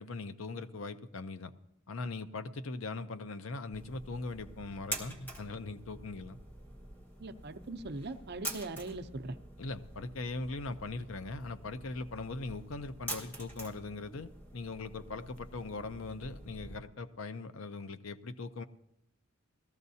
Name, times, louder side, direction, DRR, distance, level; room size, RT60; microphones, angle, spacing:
voice 1, 0.0-1.5 1.9-6.4 9.6-18.6, left 3 dB, 70° left, 11 dB, 0.6 m, -40 dB
sound 1, 3.7-16.8, right 1 dB, 10° left, 1.4 m, -46 dB
voice 2, 7.2-9.4, right 2 dB, 50° right, 8 dB, 0.7 m, -40 dB
19.0 x 14.0 x 2.8 m, 0.83 s
head